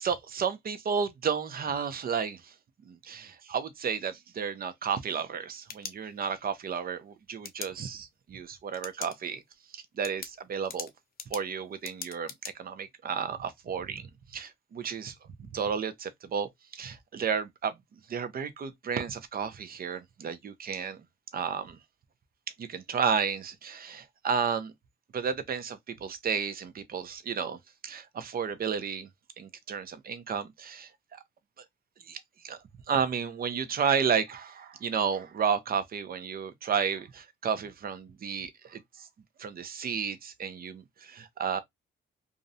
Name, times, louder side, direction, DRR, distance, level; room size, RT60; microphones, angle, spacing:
voice 1, 0.0-2.5 2.9-9.4 9.7-10.9 11.3-17.8 18.1-21.0 21.3-21.8 22.6-24.7 25.1-29.1 29.4-31.2 32.1-32.6 32.9-39.1 39.4-41.6, right 6 dB, 45° right, 0.5 m, -32 dB
sound 1, 5.3-6.5 7.4-7.7 8.7-9.2 9.5-9.6 10.0-12.5, left 6 dB, 50° left, 0.5 m, -41 dB
2.5 x 2.1 x 2.6 m
cardioid pair, 80°, 21 cm